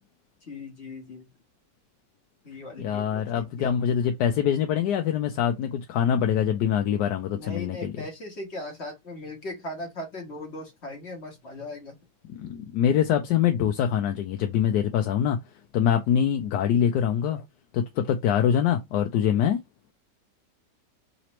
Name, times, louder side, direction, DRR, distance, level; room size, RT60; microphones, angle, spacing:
voice 1, 0.4-1.3 2.4-3.7 7.3-11.9, left 1 dB, 40° left, 1.5 m, -38 dB
voice 2, 2.8-7.9 12.3-15.4 15.7-17.4 17.7-19.6, left 9 dB, 75° left, 1.1 m, -24 dB
4.0 x 2.9 x 3.0 m
omnidirectional pair, 1.9 m